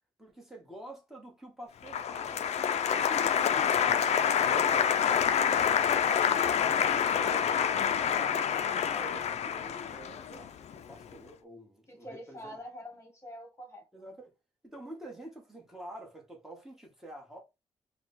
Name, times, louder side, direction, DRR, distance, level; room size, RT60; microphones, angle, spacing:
voice 1, 0.2-2.5 2.9-6.3 6.6-8.5 8.9-12.6 13.9-14.3 14.6-17.4, right 1 dB, 5° right, 1.6 m, -47 dB
Applause, 1.9-10.9, left 8 dB, 70° left, 0.5 m, -27 dB
voice 2, 11.9-14.1, equal, 25° left, 1.6 m, -46 dB
4.7 x 2.3 x 4.2 m
wide cardioid pair, 125°, 12 cm